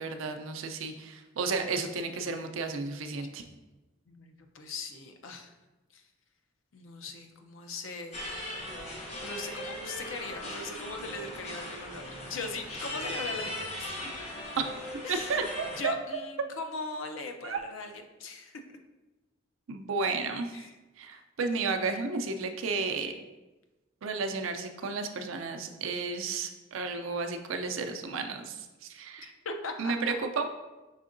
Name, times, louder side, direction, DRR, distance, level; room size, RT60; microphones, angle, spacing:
voice 1, 0.0-3.4 14.6-14.7 15.1-15.9 17.4-17.6 19.7-20.6 21.0-23.1 24.0-29.3 29.8-30.6, right 4 dB, 75° right, 6 dB, 0.5 m, -32 dB
voice 2, 4.1-5.5 5.9-6.1 6.7-8.4 9.2-13.9 15.0-15.4 15.8-17.9 18.2-18.8 20.5-20.8 29.2-29.9, left 3 dB, 70° left, 5 dB, 0.5 m, -40 dB
sound 1, 8.1-15.8, left 1 dB, 35° left, 0.8 m, -39 dB
5.6 x 3.6 x 2.5 m, 1.1 s
head